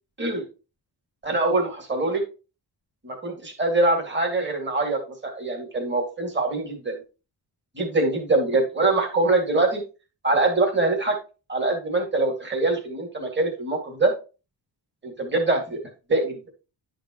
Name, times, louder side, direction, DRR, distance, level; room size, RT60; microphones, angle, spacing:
voice 1, 1.2-2.2 3.0-7.0 7.8-9.8 10.2-11.2 11.5-14.1 15.0-15.8 16.1-16.4, right 2 dB, 25° right, 1 dB, 2.4 m, -23 dB
10.5 x 5.2 x 3.1 m, 0.33 s
wide cardioid pair, 100°, 43 cm